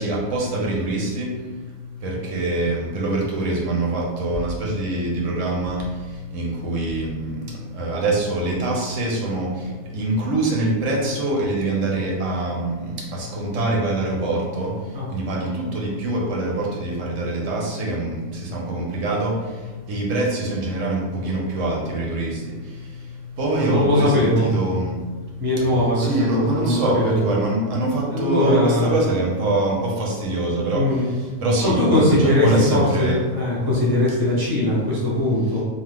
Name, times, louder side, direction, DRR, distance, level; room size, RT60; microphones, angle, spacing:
voice 1, 0.0-33.2, right 2 dB, 80° right, -2 dB, 1.0 m, -24 dB
voice 2, 23.6-24.5 25.4-27.3 28.1-28.9 30.7-31.1 31.6-35.6, left 1 dB, 20° right, -6 dB, 0.7 m, -20 dB
2.9 x 2.0 x 3.3 m, 1.4 s
omnidirectional pair, 1.3 m